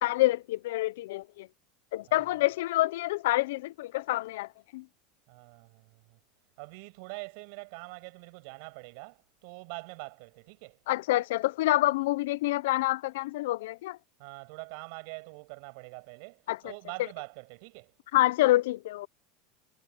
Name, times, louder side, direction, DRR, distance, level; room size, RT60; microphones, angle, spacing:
voice 1, 0.0-1.5 1.9-4.8 10.9-14.0 16.5-16.6 18.1-19.1, left 17 dB, 80° left, 0.5 m, -27 dB
voice 2, 5.3-6.0 6.6-10.8 14.2-17.9, right 34 dB, 60° right, 6.8 m, -44 dB
supercardioid pair, 160°, 0 cm